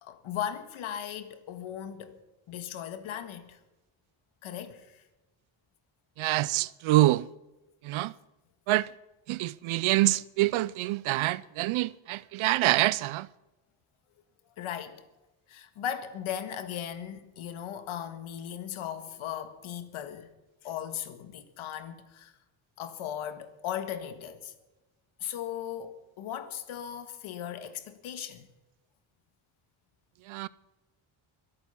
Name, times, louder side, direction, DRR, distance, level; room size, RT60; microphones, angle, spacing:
voice 1, 0.0-2.2 2.5-3.6 4.4-5.0 14.6-15.0 15.5-20.3 20.6-22.3 22.8-24.5 25.2-28.5, left 9 dB, 80° left, 1.7 m, -37 dB
voice 2, 6.2-7.3 7.8-8.1 8.7-8.9 9.3-13.3 30.3-30.5, right 17 dB, 75° right, 0.5 m, -26 dB
23.5 x 8.8 x 5.7 m
cardioid pair, 130°, 48 cm